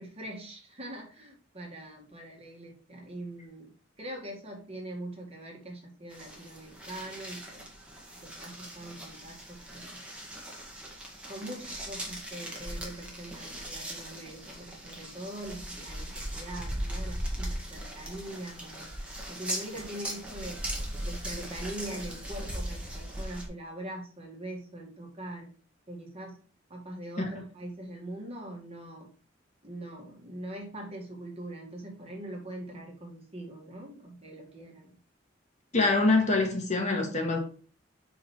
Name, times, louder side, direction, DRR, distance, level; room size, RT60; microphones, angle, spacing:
voice 1, 0.0-3.7 4.0-7.7 8.2-10.0 11.3-18.9 19.3-20.7 21.0-25.5 25.9-26.4 26.7-29.1 29.6-35.0, right 1 dB, 30° right, 1.9 m, -42 dB
sound 1, 6.1-23.5, right 1 dB, 5° right, 1.6 m, -39 dB
voice 2, 35.7-37.4, left 3 dB, 40° left, 1.6 m, -25 dB
5.4 x 5.0 x 4.3 m
head